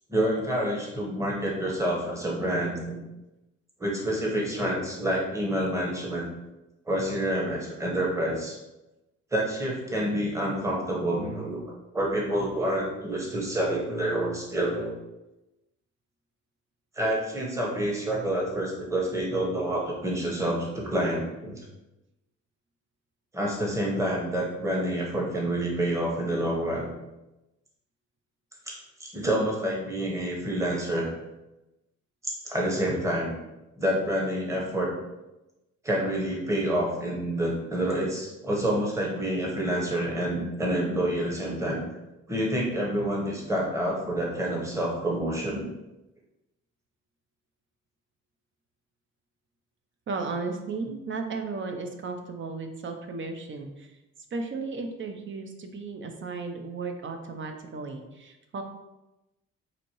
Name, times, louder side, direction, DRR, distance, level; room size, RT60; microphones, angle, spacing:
voice 1, 0.1-3.0 3.8-6.3 6.9-8.6 9.3-11.6 11.9-14.9 17.0-21.6 23.3-26.9 28.7-31.1 32.2-33.4 33.8-34.9 35.8-41.8 42.3-45.7 50.8-50.9, right 1 dB, 10° right, -3 dB, 1.0 m, -28 dB
voice 2, 50.1-53.9 54.3-58.6, right 4 dB, 40° right, 5 dB, 0.6 m, -35 dB
4.2 x 2.7 x 3.0 m, 0.98 s
cardioid pair, 90°, 30 cm